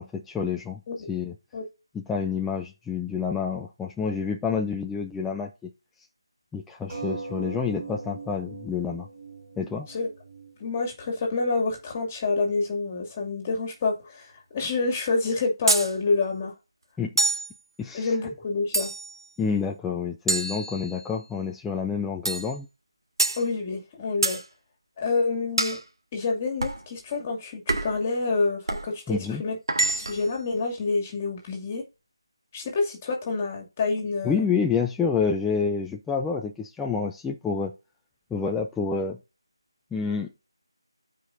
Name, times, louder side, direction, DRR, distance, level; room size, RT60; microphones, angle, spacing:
voice 1, 0.0-0.8 1.1-1.3 1.9-5.7 6.5-9.1 9.6-9.9 17.0-17.1 17.8-18.1 19.4-22.7 29.1-29.4 34.2-37.7 38.3-39.2 39.9-40.3, left 5 dB, 5° left, 0.4 m, -28 dB
sound 1, 6.9-11.9 12.6-12.7 13.0-13.1, right 4 dB, 20° right, 5.8 m, -40 dB
voice 2, 10.6-16.5 17.9-18.9 23.4-24.4 25.0-25.8 26.1-29.6 29.9-31.8 32.5-34.5, left 3 dB, 20° left, 2.5 m, -27 dB
sound 2, 15.7-15.9 17.2-17.5 18.7-19.2 20.3-21.2 22.3-22.5 23.2-23.4 24.2-24.4 25.6-25.8 26.6-26.8 27.7-28.0 28.7-28.9 29.7-30.3, right 2 dB, 60° right, 1.9 m, -26 dB
15.0 x 5.0 x 2.6 m
figure-of-eight pair, 165°, 3 cm